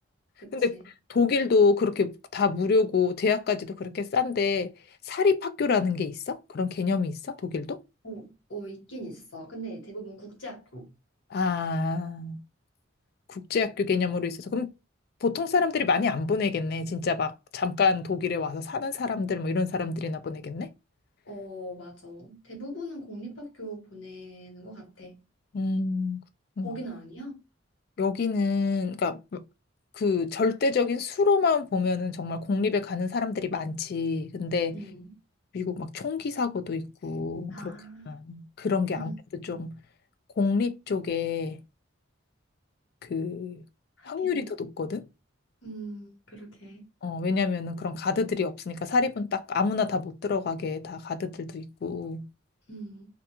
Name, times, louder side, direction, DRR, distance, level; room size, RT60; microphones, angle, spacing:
voice 1, 0.4-0.8 8.0-10.9 21.2-25.2 26.6-27.4 34.7-35.2 37.5-38.1 38.9-39.1 44.0-44.5 45.6-46.9 52.7-53.1, right 1 dB, 65° left, 1.1 m, -41 dB
voice 2, 1.1-4.7 5.1-7.8 11.3-12.4 13.3-14.7 15.2-20.7 25.5-26.2 26.6-26.8 28.0-29.4 29.9-34.8 35.5-37.7 38.1-39.8 40.4-41.6 43.0-43.6 44.1-45.0 47.0-52.3, left 4 dB, 50° left, 0.3 m, -27 dB
2.3 x 2.2 x 2.8 m
head